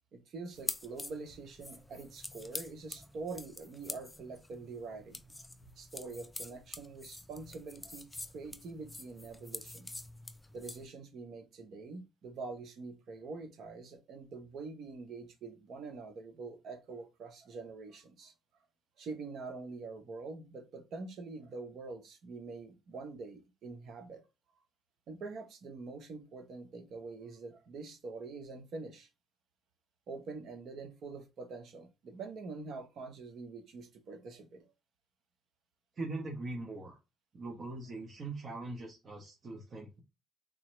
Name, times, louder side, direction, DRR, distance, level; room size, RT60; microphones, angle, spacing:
voice 1, 0.1-5.2 5.8-8.1 8.3-9.9 10.5-18.3 19.0-24.2 25.1-29.1 30.1-34.7, right 3 dB, 60° right, 1.0 m, -45 dB
sound 1, 0.5-10.9, left 2 dB, 10° left, 0.5 m, -46 dB
voice 2, 36.0-37.0 37.3-40.0, right 2 dB, 45° right, 1.1 m, -41 dB
3.8 x 2.9 x 3.2 m
cardioid pair, 95°, 0 cm